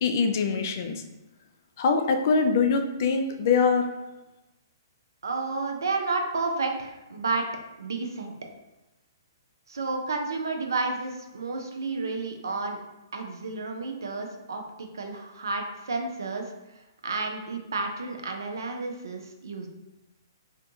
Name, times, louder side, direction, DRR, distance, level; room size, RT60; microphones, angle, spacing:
voice 1, 0.0-1.0 1.8-3.9, left 5 dB, 50° left, 5 dB, 0.3 m, -23 dB
voice 2, 5.2-7.5 7.8-8.3 9.7-12.8 13.1-16.5 17.0-19.7, right 3 dB, 75° right, 3 dB, 0.4 m, -31 dB
2.5 x 2.2 x 2.6 m, 0.99 s
figure-of-eight pair, 125°, 2 cm